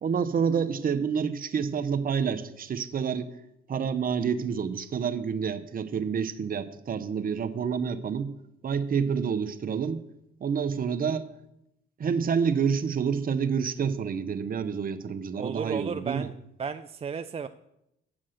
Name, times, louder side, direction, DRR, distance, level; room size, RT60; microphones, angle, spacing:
voice 1, 0.0-3.3 3.7-8.3 8.6-10.0 10.4-11.3 12.0-16.3, right 6 dB, 45° right, 9 dB, 0.8 m, -28 dB
voice 2, 15.4-16.3 16.6-17.5, right 6 dB, 30° right, 8 dB, 0.4 m, -33 dB
8.7 x 7.3 x 6.4 m, 0.83 s
cardioid pair, 90°, 20 cm